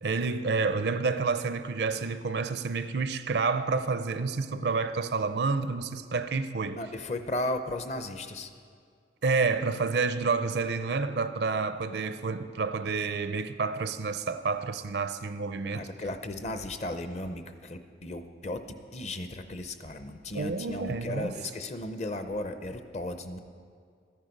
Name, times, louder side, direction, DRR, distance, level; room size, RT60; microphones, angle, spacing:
voice 1, 0.0-6.8 9.2-15.9 20.3-21.3, right 4 dB, 65° right, 0.5 m, -29 dB
voice 2, 6.7-8.5 15.7-23.4, left 1 dB, 35° left, 0.6 m, -35 dB
13.0 x 10.0 x 5.2 m
head